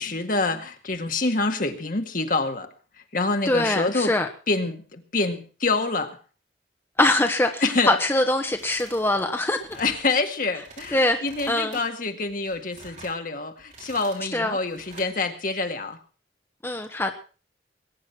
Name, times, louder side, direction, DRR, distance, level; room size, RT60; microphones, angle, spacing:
voice 1, 0.0-2.7 3.1-4.1 4.5-6.2 7.6-7.9 9.8-16.0, left 3 dB, 50° left, 2.0 m, -26 dB
voice 2, 3.5-4.3 7.0-9.6 10.9-11.8 14.3-14.6 16.6-17.1, left 1 dB, 15° left, 1.2 m, -23 dB
sound 1, 8.4-9.1 9.4-10.0 10.5-10.9 11.2-11.8 12.3-13.2 13.6-14.3 14.7-15.1, right 3 dB, 45° right, 5.6 m, -47 dB
21.0 x 9.7 x 6.0 m
head